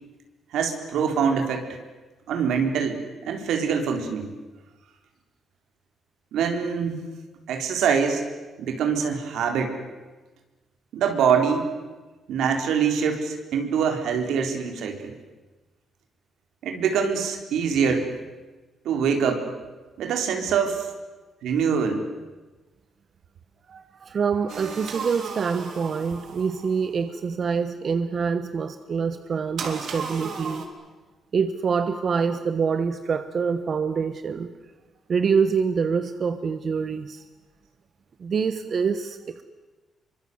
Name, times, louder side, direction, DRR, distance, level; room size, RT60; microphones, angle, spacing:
voice 1, 0.5-1.8 2.3-4.3 6.3-7.0 7.5-8.3 8.6-9.7 10.9-11.7 12.3-15.1 16.6-18.1 18.8-19.5 20.0-20.9 21.4-22.1, right 6 dB, 85° right, 5 dB, 4.0 m, -24 dB
voice 2, 23.7-30.6 31.3-34.5 35.1-37.2 38.2-39.4, right 5 dB, 45° right, 9 dB, 1.3 m, -26 dB
sound 1, 24.5-27.0 29.6-30.7, right 5 dB, 65° right, 3.8 m, -35 dB
26.5 x 24.0 x 8.0 m, 1.2 s
cardioid pair, 130°, 0 cm